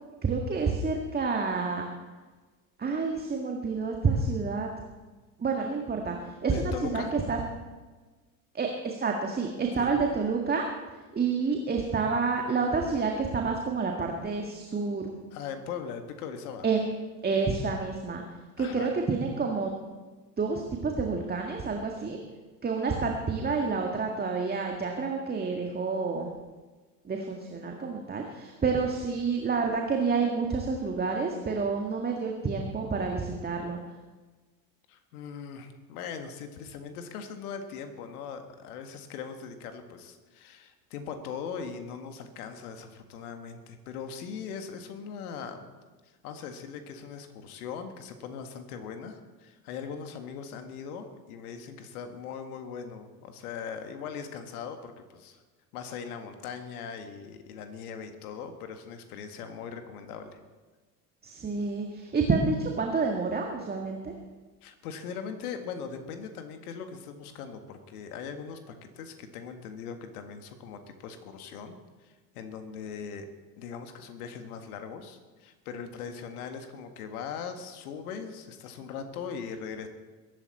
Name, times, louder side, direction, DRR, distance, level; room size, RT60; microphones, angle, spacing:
voice 1, 0.2-1.9 2.8-4.7 5.4-7.4 8.5-10.7 11.1-15.1 16.6-16.9 17.2-18.2 18.6-19.7 20.4-22.2 22.6-26.3 27.0-33.8 61.2-64.1, right 4 dB, 20° right, 2 dB, 1.8 m, -29 dB
voice 2, 6.5-7.2 9.8-9.9 15.3-16.7 18.6-19.0 34.9-45.7 46.0-55.4 55.7-60.4 64.6-73.3 73.6-79.9, left 6 dB, 60° left, 7 dB, 1.9 m, -40 dB
21.5 x 11.5 x 4.3 m, 1.3 s
figure-of-eight pair, 75°, 50 cm